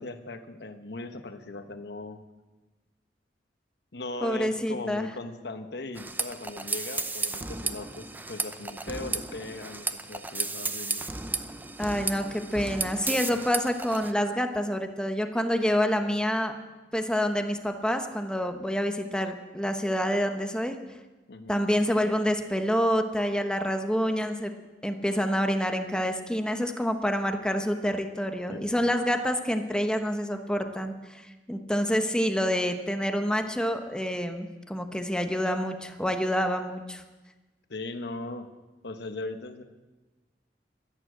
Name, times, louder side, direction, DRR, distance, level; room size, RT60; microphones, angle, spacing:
voice 1, 0.0-2.2 3.9-11.0 21.3-21.6 28.5-28.8 37.7-38.5 38.8-39.6, left 2 dB, 70° left, 8 dB, 1.1 m, -39 dB
voice 2, 4.2-5.1 11.8-16.5 16.9-20.7 21.5-24.5 24.8-30.9 31.5-37.0, equal, 5° left, 6 dB, 1.0 m, -27 dB
sound 1, 6.0-14.1, right 3 dB, 10° right, 0.6 m, -34 dB
12.0 x 11.5 x 7.9 m, 1.2 s
head